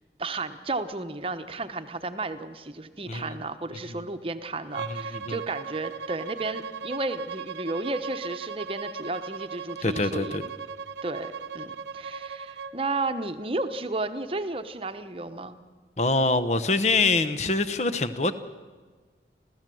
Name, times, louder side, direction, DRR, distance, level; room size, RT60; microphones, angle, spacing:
voice 1, 0.2-10.3 11.0-15.6, right 2 dB, 30° right, 1.0 m, -33 dB
Bowed string instrument, 4.7-12.8, right 5 dB, 80° right, 0.9 m, -37 dB
voice 2, 9.8-10.4 16.0-18.4, left 3 dB, 40° left, 1.0 m, -24 dB
30.0 x 13.5 x 7.8 m
head